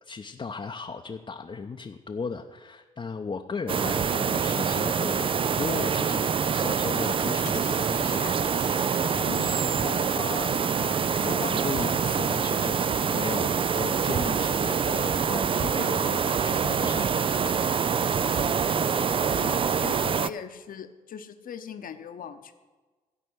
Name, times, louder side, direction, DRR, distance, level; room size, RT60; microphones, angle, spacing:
voice 1, 0.0-10.5 10.8-17.7 19.3-19.7, left 4 dB, 30° left, 3 dB, 0.8 m, -36 dB
sound 1, 3.7-20.3, right 6 dB, 30° right, 0.4 m, -25 dB
sound 2, 7.4-12.6, left 10 dB, 75° left, 0.9 m, -50 dB
voice 2, 9.3-9.8 18.0-19.4 19.8-22.5, left 7 dB, 50° left, 8 dB, 1.0 m, -41 dB
15.5 x 5.4 x 7.8 m, 1.3 s
hypercardioid pair, 45°, 18 cm